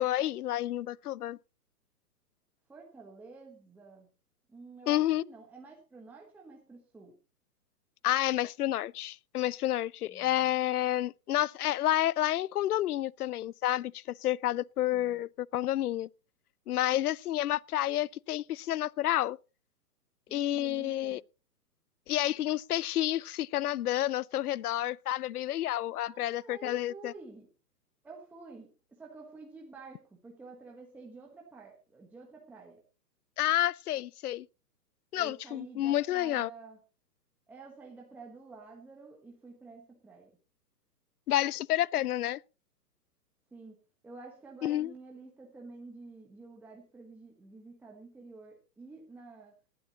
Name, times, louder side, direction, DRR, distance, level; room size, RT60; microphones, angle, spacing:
voice 1, 0.0-1.4 4.9-5.2 8.0-16.1 16.7-19.4 20.3-21.2 22.1-27.1 33.4-34.5 35.1-36.5 41.3-42.4 44.6-44.9, left 13 dB, 65° left, 0.5 m, -30 dB
voice 2, 2.7-4.1 4.5-7.2 10.1-10.5 14.9-15.2 20.3-21.2 26.0-27.5 28.0-32.8 35.2-36.8 37.5-40.4 43.5-43.8 44.0-49.6, right 3 dB, 5° right, 1.1 m, -50 dB
18.5 x 12.0 x 2.9 m
hypercardioid pair, 150°, 49 cm